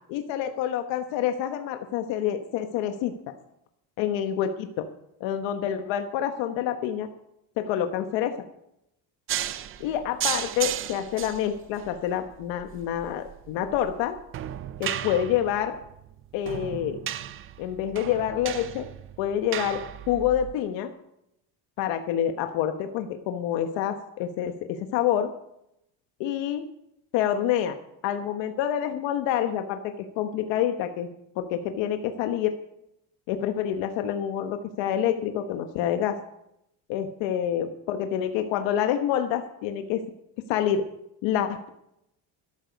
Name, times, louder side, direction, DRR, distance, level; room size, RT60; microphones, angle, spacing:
voice 1, 0.1-3.3 4.0-4.9 5.2-7.1 7.6-8.3 9.8-14.2 14.8-15.7 16.3-17.0 17.6-18.9 19.2-20.9 21.8-25.3 26.2-26.7 27.1-27.8 28.0-31.1 31.4-32.5 33.3-36.2 36.9-40.0 40.5-40.8 41.2-41.7, left 10 dB, 85° left, 7 dB, 1.2 m, -27 dB
sound 1, 9.3-20.5, right 11 dB, 30° right, 0.4 m, -35 dB
13.0 x 12.0 x 5.3 m, 0.81 s
cardioid pair, 180°, 43 cm